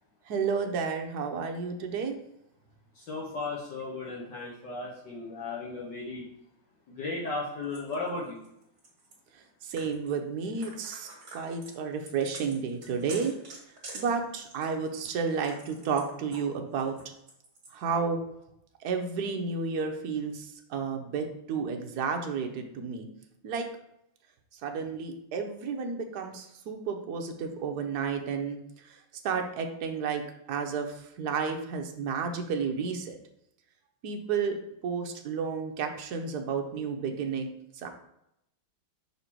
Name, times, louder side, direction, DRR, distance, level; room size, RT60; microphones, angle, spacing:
voice 1, 0.3-2.2 9.6-13.3 13.9-16.9 17.7-18.2 18.8-23.1 23.4-23.7 24.6-28.6 28.9-29.0 29.2-30.2 30.5-33.2 34.0-37.5 37.7-37.9, right 5 dB, 60° right, 4 dB, 1.1 m, -31 dB
voice 2, 2.9-6.2 6.9-8.4, left 3 dB, 60° left, -4 dB, 1.5 m, -35 dB
sound 1, 7.7-9.1 9.8-10.1 10.4-16.5 16.8-17.8, right 3 dB, 45° right, 1.8 m, -47 dB
5.9 x 4.2 x 4.5 m, 0.80 s
omnidirectional pair, 2.4 m